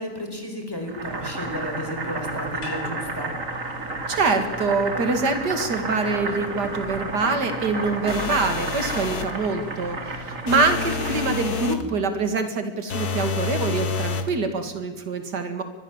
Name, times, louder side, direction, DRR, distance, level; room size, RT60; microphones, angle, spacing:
voice 1, 0.0-3.3 11.8-12.0, equal, 15° left, 4 dB, 4.7 m, -33 dB
Boiling, 0.9-11.5, right 2 dB, 50° right, 3.0 m, -31 dB
sound 1, 2.6-7.0 7.3-7.4, left 3 dB, 45° left, 3.4 m, -44 dB
voice 2, 4.1-15.6, right 3 dB, 85° right, 7 dB, 2.7 m, -25 dB
sound 2, 8.1-9.4 10.5-11.9 12.9-14.3, left 4 dB, 70° left, 2.0 m, -29 dB
24.5 x 21.0 x 7.3 m, 1.3 s
omnidirectional pair, 1.7 m